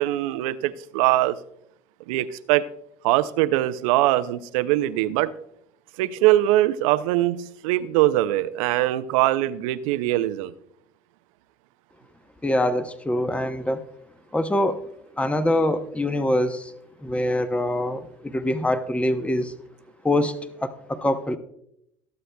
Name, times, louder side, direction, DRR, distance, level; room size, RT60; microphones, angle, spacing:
voice 1, 0.0-1.4 2.1-2.7 3.0-5.3 6.0-10.5, right 15 dB, 75° right, 14 dB, 0.5 m, -22 dB
voice 2, 12.4-13.8 14.3-14.8 15.2-16.7 17.0-19.5 20.0-21.4, left 1 dB, 5° left, 11 dB, 0.8 m, -24 dB
21.5 x 7.7 x 2.2 m, 0.77 s
hypercardioid pair, 70°, 17 cm